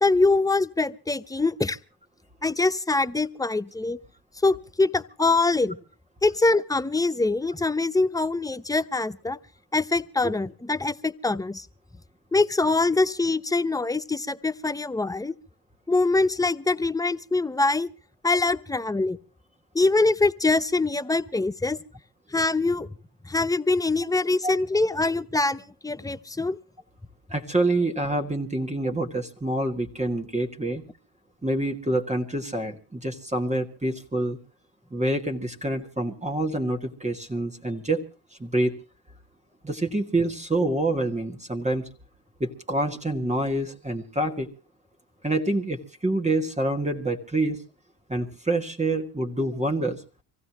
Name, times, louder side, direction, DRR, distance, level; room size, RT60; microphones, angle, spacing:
voice 1, 0.0-1.8 2.4-4.0 4.4-5.8 6.2-9.4 9.7-11.7 12.3-15.3 15.9-17.9 18.2-19.2 19.7-21.8 22.3-22.9 23.2-26.6, left 3 dB, 10° left, 0.8 m, -24 dB
voice 2, 27.3-30.8 31.4-34.4 34.9-38.0 38.4-38.7 39.6-41.9 42.4-44.5 45.2-47.6 48.1-50.0, right 2 dB, 15° right, 2.2 m, -27 dB
25.5 x 15.5 x 3.1 m
hypercardioid pair, 50°, 46 cm